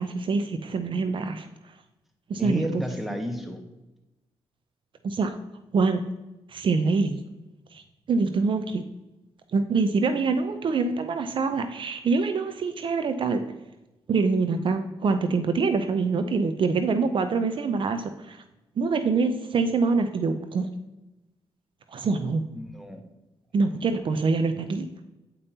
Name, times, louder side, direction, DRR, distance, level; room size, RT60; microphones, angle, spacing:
voice 1, 0.0-1.5 2.3-2.6 5.0-5.3 5.7-6.0 6.5-7.2 7.7-7.8 8.1-8.8 9.5-13.4 14.1-18.4 18.8-20.7 21.9-22.4 23.5-25.0, right 4 dB, 55° right, 9 dB, 0.5 m, -25 dB
voice 2, 2.4-3.6 22.5-23.0 23.6-23.9, equal, ahead, 4 dB, 1.2 m, -32 dB
8.3 x 5.3 x 2.8 m, 0.99 s
cardioid pair, 70°, 10 cm